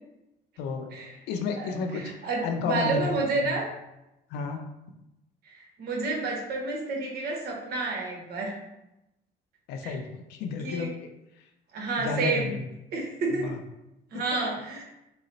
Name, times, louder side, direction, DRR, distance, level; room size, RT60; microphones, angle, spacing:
voice 1, 0.6-0.9 1.3-2.1 2.4-3.1 3.4-3.5 4.3-4.6 9.7-10.9 12.0-12.6 13.4-13.6 14.1-14.4, left 5 dB, 85° left, 5 dB, 0.5 m, -31 dB
voice 2, 1.5-3.7 5.5-8.6 9.8-10.0 10.6-10.9 11.7-12.5 12.9-13.5 14.1-14.8, right 3 dB, 70° right, 0 dB, 1.0 m, -30 dB
3.8 x 2.0 x 3.9 m, 0.91 s
cardioid pair, 110°, 17 cm